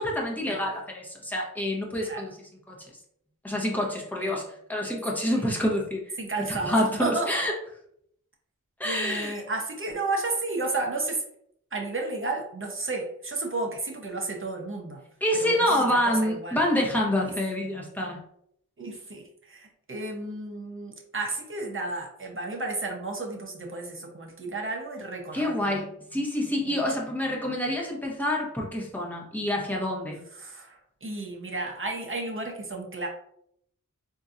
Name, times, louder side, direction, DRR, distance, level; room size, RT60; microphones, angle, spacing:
voice 1, 0.0-2.4 2.7-2.8 3.4-4.4 4.7-6.2 6.6-7.5 8.8-9.4 15.2-18.2 25.3-30.2, left 1 dB, 5° left, -2 dB, 1.0 m, -27 dB
voice 2, 6.2-7.4 8.8-11.2 11.7-15.0 15.3-16.6 18.8-25.6 26.7-26.8 30.3-33.1, right 2 dB, 40° right, 1 dB, 0.9 m, -32 dB
3.7 x 2.7 x 2.5 m, 0.72 s
wide cardioid pair, 45°, 32 cm